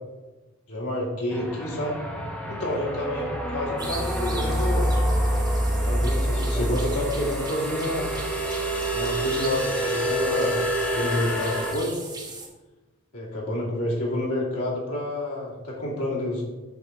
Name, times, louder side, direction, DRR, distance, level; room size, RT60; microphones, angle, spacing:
voice 1, 0.7-2.0 2.5-4.9 5.8-8.1 8.9-10.6 10.9-12.1 13.1-16.4, left 1 dB, 80° left, -4 dB, 2.5 m, -29 dB
sound 1, 1.3-11.7, equal, 5° left, 0.9 m, -27 dB
sound 2, 3.8-12.5, right 3 dB, 20° right, 1.1 m, -39 dB
7.1 x 4.0 x 5.9 m, 1.2 s
head